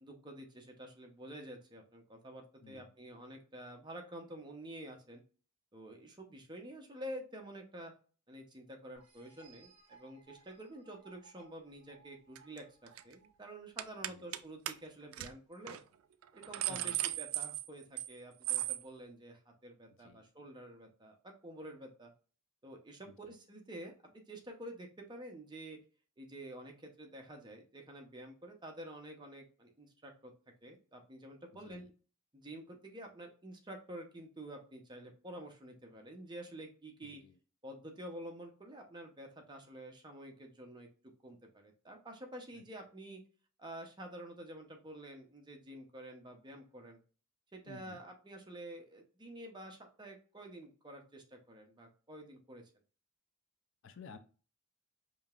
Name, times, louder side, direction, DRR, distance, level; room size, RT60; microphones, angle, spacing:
voice 1, 0.0-5.2 5.7-7.9 8.3-15.8 16.3-22.1 22.6-25.8 26.2-30.3 30.6-31.9 32.3-37.2 37.6-40.9 41.2-43.2 43.6-47.0 47.5-52.6, right 1 dB, 20° right, 2 dB, 0.7 m, -49 dB
sound 1, 8.9-14.4, right 5 dB, 40° right, 2.1 m, -63 dB
sound 2, 12.3-12.6 12.9-13.1 13.8-14.4 14.7-14.8 15.1-15.3 15.7-15.8 16.2-18.1 18.4-18.8, right 14 dB, 75° right, 0.3 m, -36 dB
voice 2, 16.7-17.0 20.0-20.2 23.1-23.4 31.6-31.9 37.0-37.4 42.5-42.6 47.7-48.0 53.8-54.2, left 4 dB, 60° left, 8 dB, 0.4 m, -54 dB
5.0 x 2.8 x 2.4 m, 0.38 s
head